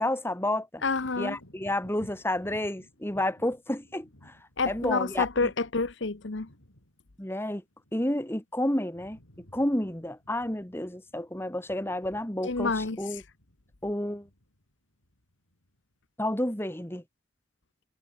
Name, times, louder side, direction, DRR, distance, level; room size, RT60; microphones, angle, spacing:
voice 1, 0.0-0.8 1.2-4.4 4.7-5.5 7.2-7.6 7.9-9.2 9.5-13.2 13.8-14.3 16.2-17.0, left 1 dB, 10° left, 1.9 m, -30 dB
voice 2, 0.8-1.4 4.6-6.5 12.4-13.2, left 3 dB, 60° left, 1.0 m, -29 dB
Wind / Thunder, 0.9-8.5 8.8-16.0 16.4-16.6, left 1 dB, 90° left, 5.3 m, -57 dB
head